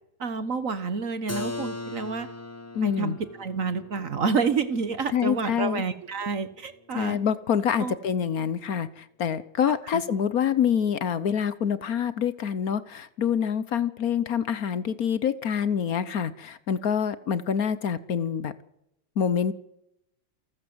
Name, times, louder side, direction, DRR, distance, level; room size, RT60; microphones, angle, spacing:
voice 1, 0.2-2.3 2.8-7.2 7.8-7.9 9.8-10.0, right 5 dB, 50° right, 13 dB, 1.4 m, -29 dB
Keyboard (musical), 1.3-6.9, left 3 dB, 10° left, 0.8 m, -40 dB
voice 2, 2.7-3.2 5.1-5.8 6.9-18.5 19.2-19.5, left 8 dB, 55° left, 16 dB, 1.2 m, -26 dB
28.0 x 13.0 x 7.9 m, 0.85 s
omnidirectional pair, 2.1 m